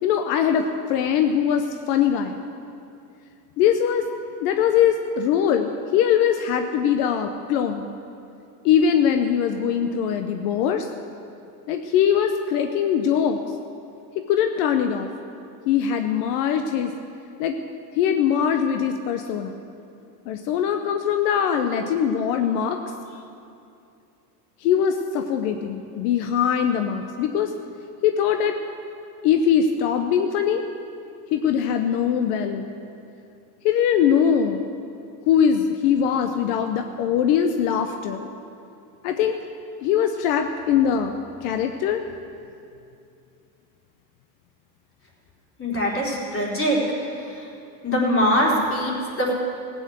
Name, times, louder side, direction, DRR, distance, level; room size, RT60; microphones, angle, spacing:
voice 1, 0.0-2.4 3.6-4.1 4.4-7.9 8.6-10.9 11.7-13.4 14.1-15.1 15.7-16.9 17.4-17.6 17.9-19.6 20.3-22.8 24.6-27.5 28.0-28.6 29.2-30.6 31.3-32.7 33.6-34.6 35.3-38.3 39.0-39.4 39.8-41.1 41.4-42.0 45.9-46.0, left 8 dB, 80° left, 6 dB, 0.9 m, -22 dB
voice 2, 45.6-46.8 47.8-49.3, equal, 30° left, -3 dB, 4.1 m, -22 dB
15.5 x 9.1 x 8.0 m, 2.6 s
supercardioid pair, 105°, 45 cm